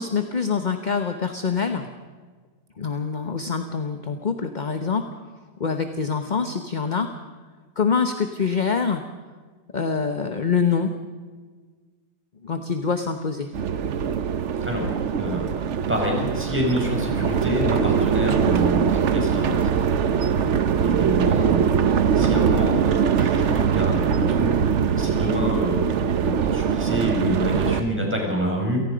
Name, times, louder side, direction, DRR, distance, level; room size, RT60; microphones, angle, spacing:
voice 1, 0.0-1.9 2.8-5.1 5.6-7.1 7.8-9.0 9.7-10.9 12.4-13.5, left 5 dB, 30° left, 7 dB, 0.9 m, -25 dB
sound 1, 13.5-27.8, right 7 dB, 55° right, 0.9 m, -22 dB
voice 2, 15.9-19.8 20.3-25.9 26.2-28.8, equal, 5° right, 0 dB, 5.5 m, -27 dB
28.5 x 18.0 x 5.2 m, 1.5 s
omnidirectional pair, 2.0 m